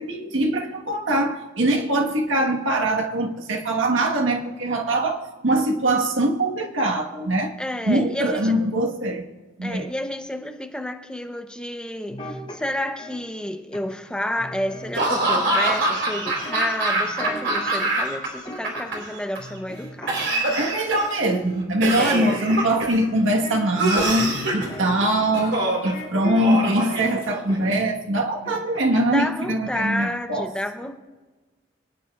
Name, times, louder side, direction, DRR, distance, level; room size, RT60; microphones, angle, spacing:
voice 1, 0.0-7.5 7.9-9.2 9.6-9.9 20.5-30.5, right 1 dB, 85° right, 1.4 m, -23 dB
voice 2, 7.6-8.6 9.6-20.3 22.0-22.4 29.1-31.0, left 1 dB, 5° left, 0.7 m, -30 dB
sound 1, 12.1-13.1 13.7-14.1 14.4-15.6 16.2-17.8 18.1-19.1 19.4-21.6 21.9-26.8 27.1-27.8 28.1-29.1 29.4-29.7, equal, 25° left, 3.5 m, -38 dB
Laughter / Cough, 14.9-18.3 18.5-19.4 20.1-21.2 21.8-23.0 23.8-24.7 25.3-25.9 26.4-27.6, right 2 dB, 65° right, 3.7 m, -24 dB
24.0 x 9.8 x 2.4 m
head